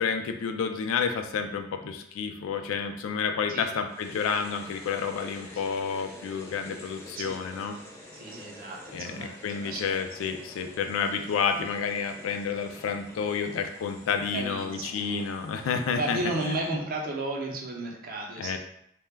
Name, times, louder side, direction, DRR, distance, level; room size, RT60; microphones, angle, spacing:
voice 1, 0.0-7.8 8.9-16.7 18.4-18.6, left 6 dB, 90° left, 6 dB, 0.3 m, -30 dB
sound 1, 3.9-16.6, left 1 dB, 15° left, 0.5 m, -48 dB
voice 2, 8.1-10.0 14.3-15.2 16.0-18.6, right 2 dB, 45° right, 0 dB, 0.5 m, -34 dB
2.2 x 2.1 x 3.3 m, 0.72 s
head